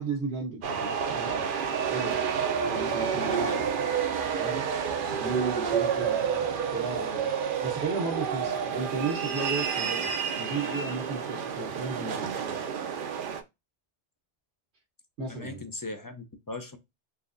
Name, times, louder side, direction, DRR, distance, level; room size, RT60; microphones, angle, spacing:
voice 1, 0.0-1.5 1.9-2.2 2.6-3.3 4.3-4.6 5.1-7.3 7.6-10.1 10.4-12.7 15.2-15.6, right 4 dB, 80° right, 1.3 m, -34 dB
sound 1, 0.6-13.4, right 7 dB, 60° right, 0.7 m, -29 dB
voice 2, 3.3-3.6 5.2-5.3 15.3-16.8, left 2 dB, 30° left, 0.4 m, -38 dB
3.9 x 2.8 x 2.5 m
omnidirectional pair, 1.1 m